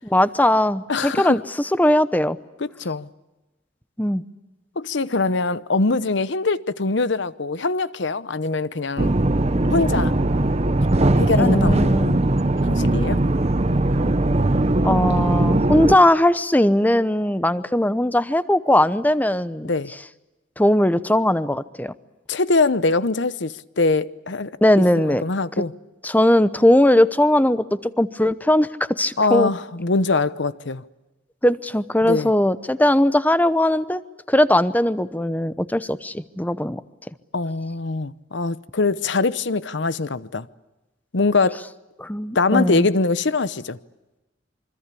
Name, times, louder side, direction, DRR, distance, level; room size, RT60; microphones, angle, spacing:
voice 1, 0.0-2.4 4.0-4.2 11.4-12.2 14.8-19.7 20.6-21.9 24.6-25.2 26.0-29.5 31.4-34.0 34.3-36.8 42.0-42.9, left 1 dB, 10° left, 0.8 m, -19 dB
voice 2, 0.9-1.4 2.6-3.1 4.8-9.1 9.6-10.1 11.2-11.9 12.6-13.2 19.6-19.9 22.3-24.5 25.0-25.7 29.2-30.8 32.0-32.3 37.3-40.5 41.1-41.6 42.3-43.8, left 3 dB, 65° left, 0.9 m, -23 dB
sound 1, 9.0-16.0, right 1 dB, 35° right, 0.8 m, -19 dB
26.0 x 24.5 x 8.4 m
head